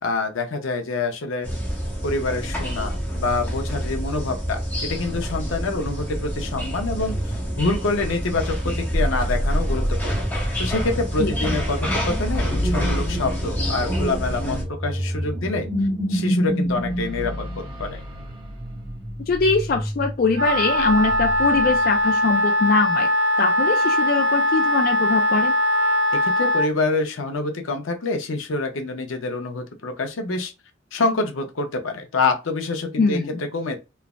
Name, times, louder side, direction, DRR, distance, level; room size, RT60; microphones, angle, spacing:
voice 1, 0.0-1.5 2.0-10.2 10.6-15.7 16.1-18.0 26.1-30.5 30.9-33.8, left 3 dB, 90° left, 0.7 m, -26 dB
sound 1, 1.4-14.6, equal, 10° left, 0.7 m, -27 dB
sound 2, 8.9-22.1, equal, 25° right, 0.8 m, -28 dB
voice 2, 19.3-23.1 23.4-25.6 33.0-33.3, left 4 dB, 50° left, 0.3 m, -22 dB
Wind instrument woodwind instrument, 20.3-26.7, left 1 dB, 75° right, 0.4 m, -20 dB
3.2 x 2.0 x 2.4 m
head